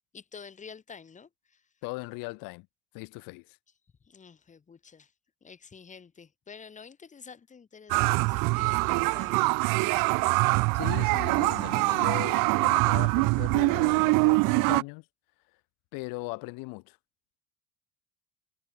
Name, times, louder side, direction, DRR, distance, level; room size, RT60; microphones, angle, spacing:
voice 1, 0.1-1.6 4.0-5.1 5.4-10.2, left 6 dB, 20° left, 6.2 m, -49 dB
voice 2, 1.8-2.7 2.9-3.6 10.7-15.0 15.9-17.0, left 27 dB, 80° left, 2.8 m, -38 dB
sound 1, 7.9-14.8, right 27 dB, 80° right, 1.2 m, -24 dB
cardioid pair, 160°, 33 cm